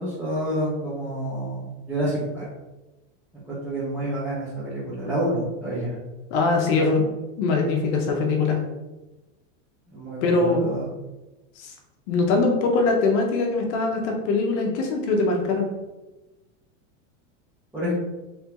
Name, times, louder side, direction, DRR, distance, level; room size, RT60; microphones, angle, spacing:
voice 1, 0.0-2.5 3.3-6.0 9.9-10.8 17.7-17.9, right 1 dB, 5° right, -13 dB, 1.3 m, -28 dB
voice 2, 6.3-7.0 7.4-8.6 10.2-10.7 11.6-11.7 12.1-15.7, left 3 dB, 65° left, 2 dB, 1.1 m, -22 dB
3.5 x 3.4 x 3.0 m, 1.1 s
supercardioid pair, 140°, 38 cm